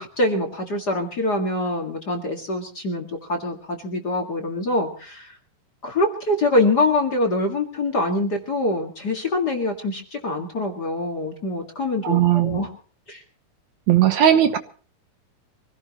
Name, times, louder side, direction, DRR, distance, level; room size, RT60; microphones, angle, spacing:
voice 1, 0.0-5.4 5.8-12.7 13.1-13.2, left 2 dB, 35° left, 3 dB, 2.1 m, -24 dB
voice 2, 12.0-12.6 13.9-14.6, right 11 dB, 70° right, 9 dB, 2.3 m, -17 dB
25.0 x 17.0 x 3.0 m, 0.40 s
omnidirectional pair, 3.8 m